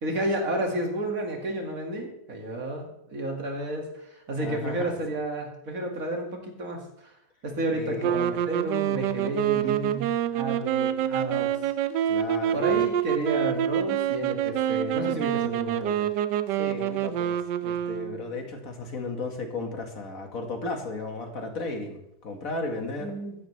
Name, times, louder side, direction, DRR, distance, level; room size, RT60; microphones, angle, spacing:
voice 1, 0.0-6.8 7.4-10.1 10.3-11.5 12.0-12.1 12.5-16.1 23.0-23.3, right 1 dB, 50° right, 1 dB, 2.5 m, -31 dB
voice 2, 4.4-4.9 7.7-8.1 12.1-12.7 16.6-23.1, left 3 dB, 50° left, 3 dB, 2.2 m, -35 dB
sound 1, 8.0-18.4, right 10 dB, 80° right, 1.2 m, -27 dB
14.5 x 11.0 x 3.3 m, 0.80 s
omnidirectional pair, 1.9 m